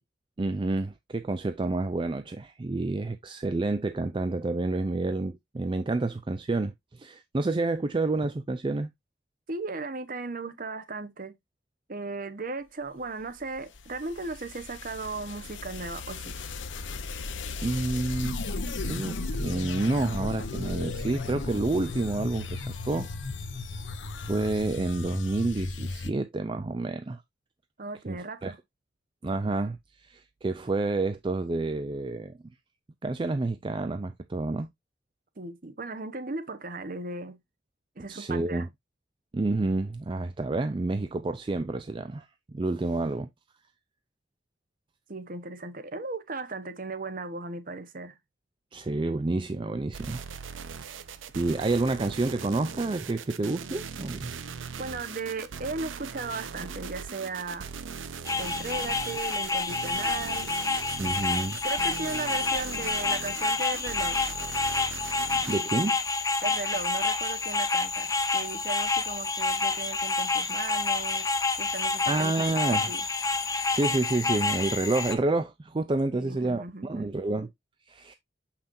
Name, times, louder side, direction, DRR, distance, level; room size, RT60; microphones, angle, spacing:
voice 1, 0.4-8.9 17.6-18.4 18.8-23.1 23.4-23.8 24.2-27.2 28.1-28.5 29.2-32.4 33.0-34.7 38.1-38.7 39.3-42.3 42.5-43.3 48.7-50.2 50.8-51.0 51.3-54.3 61.0-61.6 65.5-66.0 72.1-72.9 73.7-77.5 77.9-78.1, right 2 dB, 25° right, 0.4 m, -29 dB
voice 2, 9.5-11.4 11.9-16.4 27.8-28.6 35.4-37.4 38.0-38.7 45.1-48.2 54.8-57.7 58.4-60.5 61.6-64.2 66.4-71.2 71.6-72.1 72.4-73.0 76.1-77.1, right 3 dB, 45° right, 0.9 m, -36 dB
sound 1, 13.2-26.1, left 3 dB, 75° left, 0.9 m, -35 dB
sound 2, 49.9-65.6, right 6 dB, 90° right, 0.7 m, -40 dB
sound 3, 58.2-75.1, left 3 dB, 20° left, 0.8 m, -28 dB
6.8 x 5.8 x 2.6 m
head